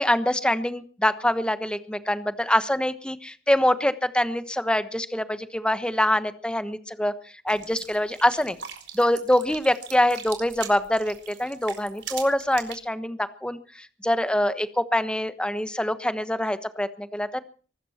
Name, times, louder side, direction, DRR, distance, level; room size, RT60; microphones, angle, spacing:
voice 1, 0.0-7.1 7.4-8.6 8.9-17.4, left 1 dB, 5° left, 12 dB, 1.2 m, -25 dB
sound 1, 7.5-12.7, right 9 dB, 75° right, 4.6 m, -41 dB
24.0 x 13.0 x 4.3 m, 0.40 s
head